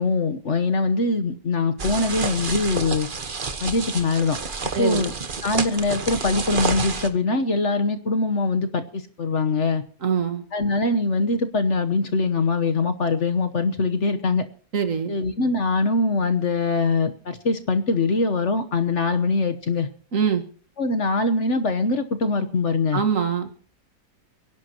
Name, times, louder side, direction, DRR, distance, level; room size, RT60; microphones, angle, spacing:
voice 1, 0.0-3.1 3.6-4.4 4.8-5.1 5.4-9.8 10.5-14.5 15.1-19.9 20.8-23.0, left 3 dB, 50° left, 8 dB, 1.3 m, -23 dB
sound 1, 1.8-7.1, right 4 dB, 35° right, 1.2 m, -29 dB
voice 2, 4.7-5.0 10.0-10.4 14.7-15.1 20.1-20.4 22.9-23.5, right 7 dB, 55° right, 7 dB, 1.9 m, -23 dB
29.5 x 11.5 x 2.9 m, 0.43 s
omnidirectional pair, 1.7 m